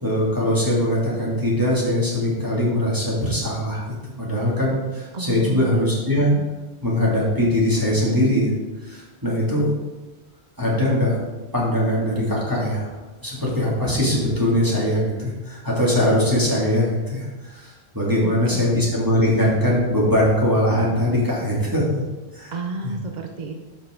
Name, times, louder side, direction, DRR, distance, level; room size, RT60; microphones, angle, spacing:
voice 1, 0.0-3.8 4.2-6.3 6.8-8.5 8.9-9.7 10.6-11.2 11.5-12.9 13.2-21.8 22.3-22.5 22.8-22.9, left 1 dB, 20° right, -6 dB, 2.7 m, -21 dB
voice 2, 5.1-5.7 18.2-18.8 22.5-23.5, right 3 dB, 45° right, 3 dB, 0.9 m, -32 dB
13.0 x 6.0 x 3.9 m, 1.2 s
omnidirectional pair, 1.1 m